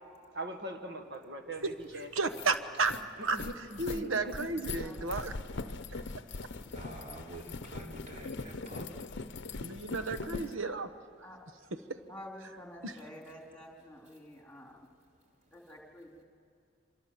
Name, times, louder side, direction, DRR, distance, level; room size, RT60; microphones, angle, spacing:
voice 1, 0.3-2.1 3.3-3.5 3.9-4.3, right 1 dB, 55° right, 6 dB, 1.7 m, -41 dB
voice 2, 1.6-2.9 3.2-5.3 9.6-10.9 11.9-12.0 12.8-12.9, right 3 dB, 80° right, 9 dB, 1.1 m, -33 dB
sound 1, 1.7-1.8 2.1-10.5, left 3 dB, 60° left, 0.7 m, -41 dB
voice 3, 4.0-5.2 5.9-9.9 14.3-14.4 15.1-15.5, right 1 dB, 35° right, -1 dB, 3.7 m, -50 dB
voice 4, 4.8-5.2 11.2-11.4 12.1-14.9 15.5-16.2, left 1 dB, 10° left, 0 dB, 3.3 m, -49 dB
27.5 x 25.0 x 7.6 m, 2.3 s
head